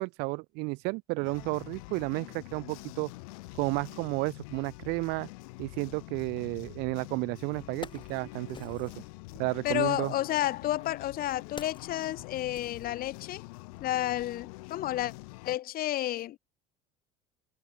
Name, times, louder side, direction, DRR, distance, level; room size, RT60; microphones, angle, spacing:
voice 1, 0.0-3.1 3.5-5.3 5.6-8.9 9.4-10.1, right 27 dB, 65° right, 0.4 m, -32 dB
sound 1, 1.2-15.6, left 28 dB, 75° left, 0.8 m, -46 dB
Wood, 7.7-9.1 10.1-13.4 13.8-13.9, left 5 dB, 25° left, 2.2 m, -49 dB
voice 2, 9.6-13.4 13.8-15.1 15.4-16.4, left 13 dB, 55° left, 1.4 m, -31 dB
hypercardioid pair, 80°, 18 cm